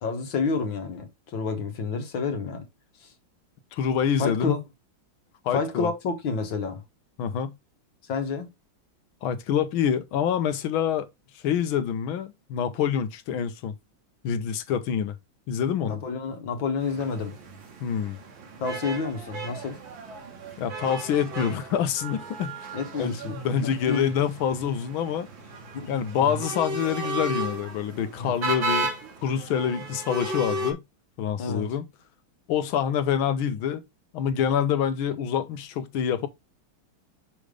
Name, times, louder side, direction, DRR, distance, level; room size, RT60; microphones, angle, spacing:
voice 1, 0.0-2.6 3.0-3.1 4.2-4.6 5.5-6.8 8.1-8.5 15.8-17.3 18.6-19.8 22.7-23.4 23.6-24.1 25.7-26.4 28.2-28.4 31.4-31.7, left 4 dB, 70° left, 2.0 m, -29 dB
voice 2, 3.7-4.5 5.4-5.9 7.2-7.5 9.2-11.1 11.4-13.7 14.2-15.1 15.5-16.0 17.8-18.2 20.6-22.5 23.0-25.3 25.9-28.9 29.2-30.8 31.2-31.8 32.5-33.8 34.1-36.3, left 8 dB, 85° left, 1.6 m, -26 dB
sound 1, 16.8-30.7, right 2 dB, 75° right, 2.3 m, -35 dB
6.3 x 3.3 x 5.0 m
omnidirectional pair, 2.2 m